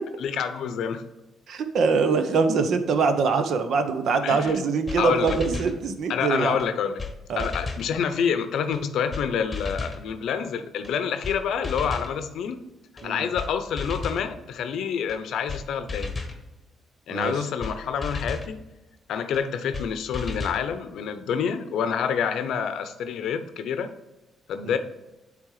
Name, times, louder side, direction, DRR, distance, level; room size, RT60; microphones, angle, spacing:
voice 1, 0.2-1.0 4.2-4.6 5.0-5.4 6.1-7.0 7.4-12.6 13.0-16.2 17.1-18.6 19.1-23.9 24.5-24.8, left 7 dB, 75° left, 10 dB, 0.6 m, -27 dB
voice 2, 1.5-6.6 7.3-7.5 13.0-13.3 17.1-17.4 24.6-24.8, right 5 dB, 65° right, 8 dB, 0.8 m, -23 dB
sound 1, 4.5-4.6 4.9-5.0 5.3-5.8 6.6-6.7 7.0-7.1 7.4-7.9 8.7-8.8 9.1-9.2 9.5-10.0 10.8-10.9 11.2-11.4 11.6-12.1 13.0-13.1 13.4-13.5 13.8-14.3 15.1-15.2 15.5-15.6 15.9-16.4 17.2-17.3 17.6-17.7 18.0-18.5 19.3-19.4 19.7-19.9 20.1-20.6, left 3 dB, 25° left, 1.0 m, -33 dB
8.4 x 3.5 x 4.8 m, 1.0 s
cardioid pair, 90°, 0 cm